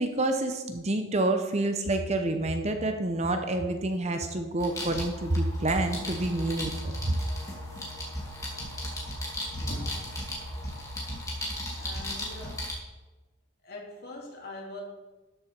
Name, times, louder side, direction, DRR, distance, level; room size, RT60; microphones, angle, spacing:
voice 1, 0.0-7.2, right 2 dB, 30° right, 6 dB, 0.8 m, -28 dB
sound 1, 4.6-12.7, left 1 dB, 15° left, 2.2 m, -36 dB
Brass instrument, 5.7-10.9, left 1 dB, 55° right, 2.2 m, -52 dB
voice 2, 9.5-10.1 11.8-12.6 13.6-14.8, left 1 dB, 50° left, -1 dB, 2.4 m, -40 dB
12.5 x 6.8 x 4.5 m, 1.2 s
head